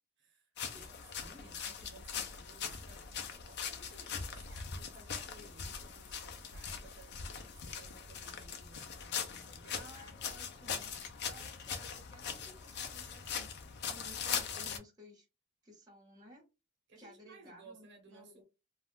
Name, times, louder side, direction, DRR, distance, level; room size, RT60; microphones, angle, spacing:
voice 1, 0.3-9.9 16.9-18.4, right 3 dB, 60° right, 1.0 m, -59 dB
sound 1, 0.6-14.8, left 7 dB, 55° left, 0.5 m, -41 dB
voice 2, 9.7-10.9 11.2-13.5 13.8-15.3 15.6-16.4 17.0-18.4, equal, 20° right, 1.2 m, -56 dB
2.4 x 2.4 x 3.4 m
head